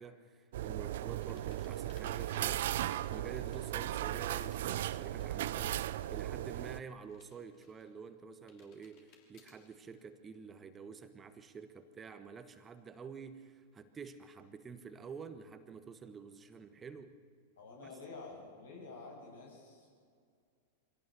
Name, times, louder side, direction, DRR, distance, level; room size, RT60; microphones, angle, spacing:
voice 1, 0.0-17.1 17.8-17.9, right 5 dB, 20° right, 9 dB, 1.3 m, -49 dB
sound 1, 0.5-6.8, right 13 dB, 60° right, 0.5 m, -36 dB
sound 2, 1.2-6.2 6.5-8.1 8.5-9.7, left 6 dB, 45° left, 3.2 m, -62 dB
voice 2, 17.6-19.9, left 3 dB, 75° left, -1 dB, 7.4 m, -49 dB
24.0 x 17.0 x 6.6 m, 2.2 s
figure-of-eight pair, 95°, 0 cm